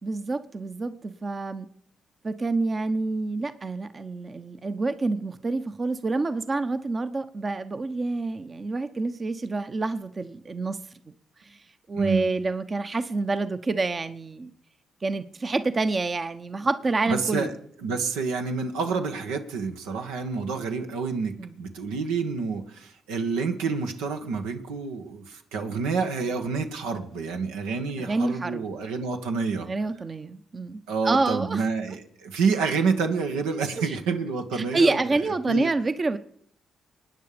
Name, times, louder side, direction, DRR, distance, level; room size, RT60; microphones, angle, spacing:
voice 1, 0.0-1.7 2.2-10.8 11.1-11.2 11.4-11.6 11.9-14.5 15.0-17.5 21.4-21.5 28.0-28.6 29.7-31.6 33.8-34.0 34.5-36.2, right 3 dB, 40° right, 10 dB, 1.0 m, -27 dB
voice 2, 17.1-17.5 17.8-29.7 30.9-35.0 35.5-35.7, right 4 dB, 85° right, 5 dB, 1.5 m, -28 dB
23.0 x 9.6 x 5.1 m, 0.63 s
hypercardioid pair, 50°, 0 cm